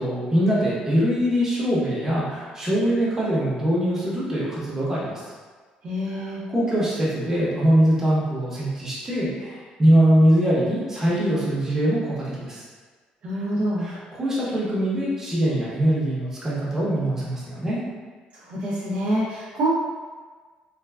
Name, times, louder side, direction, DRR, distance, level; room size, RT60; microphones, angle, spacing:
voice 1, 0.0-5.2 6.1-12.6 13.8-17.8, equal, 15° right, -7 dB, 0.8 m, -22 dB
voice 2, 5.8-6.4 13.2-13.9 18.4-19.7, right 1 dB, 50° right, -7 dB, 0.5 m, -26 dB
3.2 x 2.2 x 2.3 m, 1.5 s
cardioid pair, 125°, 3 cm